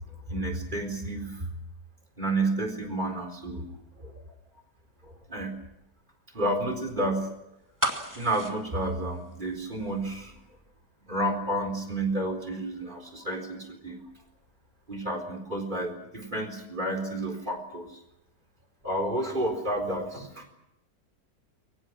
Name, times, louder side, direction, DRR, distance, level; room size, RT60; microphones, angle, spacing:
voice 1, 0.3-1.4 2.2-3.7 4.0-4.1 5.3-5.5 6.3-7.3 8.2-10.3 11.1-14.0 14.9-17.9 18.8-20.5, right 1 dB, 30° right, 3 dB, 4.3 m, -30 dB
sound 1, 7.8-9.8 10.1-10.2, right 1 dB, 10° right, 2.2 m, -32 dB
28.5 x 23.5 x 6.2 m, 0.84 s
omnidirectional pair, 1.8 m